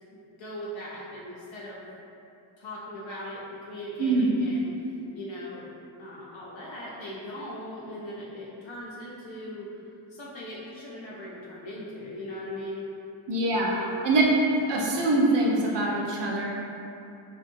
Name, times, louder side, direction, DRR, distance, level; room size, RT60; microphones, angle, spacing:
voice 1, 0.1-1.8 2.6-4.7 5.1-5.7 6.0-9.8 10.1-12.9 13.7-14.0, left 1 dB, 70° left, -6 dB, 0.6 m, -39 dB
voice 2, 4.0-4.3 13.3-13.7 14.0-14.2 14.7-16.5, right 2 dB, 60° right, -3 dB, 0.6 m, -24 dB
2.7 x 2.3 x 2.6 m, 2.7 s
cardioid pair, 100°, 48 cm